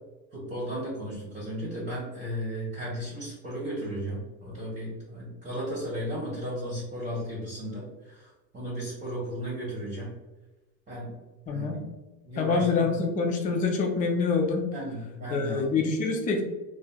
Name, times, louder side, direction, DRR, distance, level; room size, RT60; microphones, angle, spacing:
voice 1, 0.3-10.1 10.9-11.1 11.5-11.8 12.2-12.9 14.7-15.8, equal, 20° right, -7 dB, 1.0 m, -35 dB
voice 2, 11.5-11.8 12.4-14.7 15.3-16.4, left 4 dB, 20° left, 2 dB, 0.4 m, -26 dB
3.1 x 2.5 x 2.3 m, 1.1 s
supercardioid pair, 100°, 41 cm